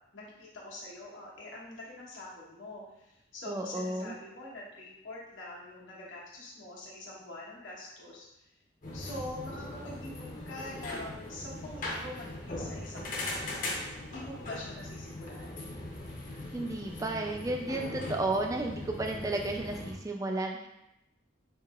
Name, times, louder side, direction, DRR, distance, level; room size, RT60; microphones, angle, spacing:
voice 1, 0.1-8.3 8.9-13.6 14.0-15.6, left 1 dB, 85° left, -5 dB, 1.1 m, -45 dB
voice 2, 3.5-4.1 16.5-20.7, right 2 dB, 15° right, 2 dB, 0.3 m, -33 dB
sound 1, 8.8-19.9, left 1 dB, 45° left, 0.7 m, -40 dB
4.6 x 2.8 x 2.4 m, 0.87 s
head